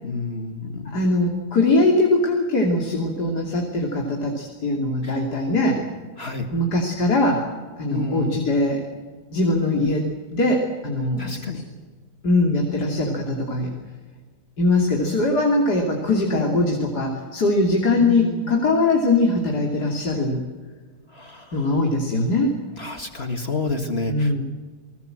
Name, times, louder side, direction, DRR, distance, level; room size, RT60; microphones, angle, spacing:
voice 1, 0.0-1.0 5.0-5.2 6.2-6.5 7.9-8.4 11.2-11.7 16.3-16.7 18.0-18.5 21.1-21.8 22.8-24.4, left 3 dB, 40° left, 6 dB, 2.2 m, -30 dB
voice 2, 0.9-5.8 6.5-7.4 7.8-8.8 9.3-10.1 10.3-11.6 12.2-13.7 14.6-20.4 21.5-22.5 24.1-24.4, left 2 dB, 75° left, 0 dB, 3.5 m, -21 dB
29.5 x 20.0 x 7.8 m, 1.5 s
omnidirectional pair, 1.8 m